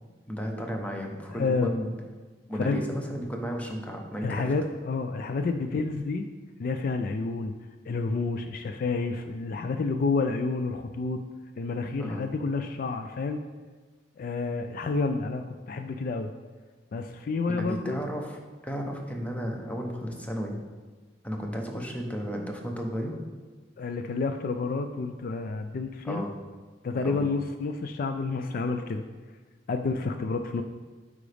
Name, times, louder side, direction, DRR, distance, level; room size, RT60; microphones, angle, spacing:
voice 1, 0.3-1.9 2.5-4.4 12.0-12.2 17.6-18.4 18.6-20.6 21.2-23.2 26.0-26.3 27.0-27.2, equal, 10° left, 1 dB, 0.8 m, -33 dB
voice 2, 1.3-1.7 2.6-2.8 4.2-6.3 6.6-7.5 7.9-11.2 11.6-13.4 14.2-16.3 16.9-18.0 23.8-26.2 26.8-29.0 29.7-30.6, left 3 dB, 50° left, 7 dB, 0.3 m, -29 dB
8.5 x 5.0 x 3.4 m, 1.4 s
head